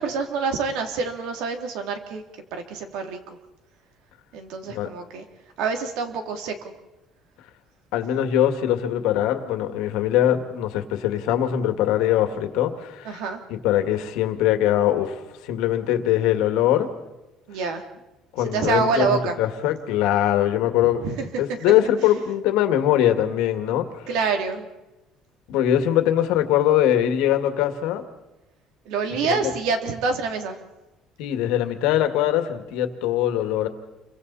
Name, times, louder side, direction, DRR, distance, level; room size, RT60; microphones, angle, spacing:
voice 1, 0.0-2.2 2.5-3.2 4.3-5.2 5.6-6.5 13.0-13.4 17.5-17.8 18.5-19.3 21.0-21.4 24.1-24.7 28.8-30.6, right 5 dB, 75° right, 5 dB, 2.9 m, -26 dB
voice 2, 7.9-13.2 13.5-16.9 18.3-21.0 21.4-24.0 25.5-28.0 29.2-29.5 31.2-33.7, left 11 dB, 85° left, 7 dB, 2.1 m, -22 dB
29.0 x 24.0 x 4.2 m, 1.0 s
cardioid pair, 170°, 0 cm